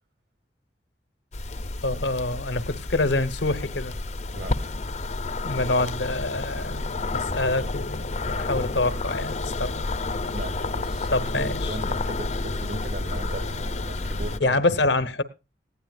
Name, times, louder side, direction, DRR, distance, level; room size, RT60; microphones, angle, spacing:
sound 1, 1.3-14.4, left 2 dB, 40° left, 0.7 m, -30 dB
voice 1, 1.8-3.9 5.4-6.8 7.1-9.8 11.1-11.9 14.4-15.2, left 2 dB, 80° left, 1.1 m, -26 dB
voice 2, 4.3-4.7 10.3-11.1 11.4-14.6, right 1 dB, 65° right, 2.4 m, -37 dB
19.0 x 15.5 x 2.4 m
head